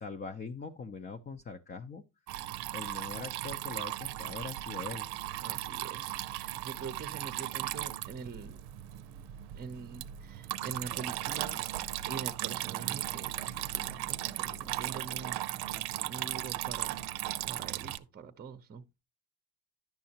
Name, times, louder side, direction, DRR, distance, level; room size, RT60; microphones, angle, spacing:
voice 1, 0.0-2.0 2.7-5.1, left 4 dB, 25° left, 0.7 m, -42 dB
Water tap faucet / Trickle dribble, 2.3-18.0, right 15 dB, 75° right, 0.7 m, -37 dB
voice 2, 5.4-8.6 9.5-11.6 12.0-17.1 17.4-18.8, right 5 dB, 25° right, 0.8 m, -45 dB
10.5 x 6.3 x 2.9 m
supercardioid pair, 90°, 39 cm